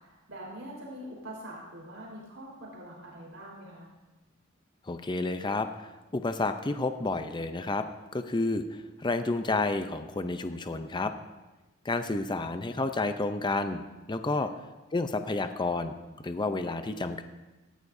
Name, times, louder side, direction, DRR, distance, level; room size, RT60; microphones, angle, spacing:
voice 1, 0.0-3.9 14.3-14.5, right 1 dB, 75° right, -3 dB, 4.3 m, -44 dB
voice 2, 4.9-7.9 8.1-11.1 11.8-13.8 14.1-14.5 14.9-17.2, left 2 dB, 20° left, 8 dB, 0.6 m, -30 dB
18.0 x 14.5 x 2.7 m, 1.1 s
head